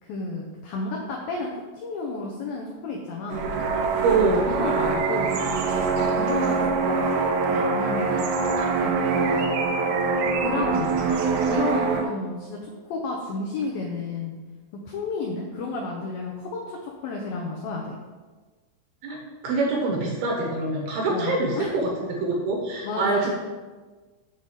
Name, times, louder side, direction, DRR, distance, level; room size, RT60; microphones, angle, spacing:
voice 1, 0.0-3.5 4.5-5.3 6.1-8.2 8.6-9.5 10.4-11.0 11.5-12.6 12.8-14.4 14.9-18.0 21.1-21.7 22.8-23.3, left 3 dB, 80° left, 0 dB, 2.1 m, -32 dB
sound 1, 3.3-12.0, right 4 dB, 90° right, 3.4 m, -24 dB
voice 2, 4.0-4.5 19.0-23.3, right 3 dB, 70° right, -1 dB, 2.6 m, -25 dB
8.7 x 4.0 x 7.2 m, 1.3 s
omnidirectional pair, 5.4 m